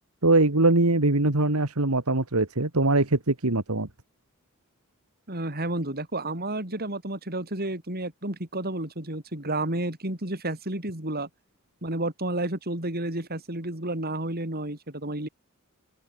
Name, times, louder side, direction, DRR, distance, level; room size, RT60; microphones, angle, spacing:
voice 1, 0.2-3.9, right 2 dB, 90° right, 2.2 m, -22 dB
voice 2, 5.3-11.3 11.8-15.3, right 1 dB, 45° right, 6.2 m, -31 dB
open air
head